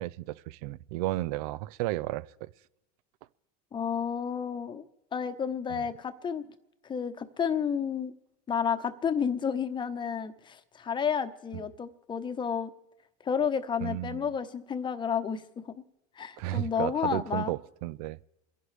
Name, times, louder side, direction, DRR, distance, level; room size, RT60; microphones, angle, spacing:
voice 1, 0.0-2.5 5.7-5.8 11.5-11.6 13.8-14.3 16.4-18.2, right 17 dB, 70° right, 0.5 m, -33 dB
voice 2, 3.7-4.8 5.1-6.4 6.9-8.1 8.5-12.7 13.2-15.6 16.2-17.5, left 7 dB, 25° left, 1.0 m, -31 dB
28.5 x 11.0 x 3.4 m
supercardioid pair, 120°, 20 cm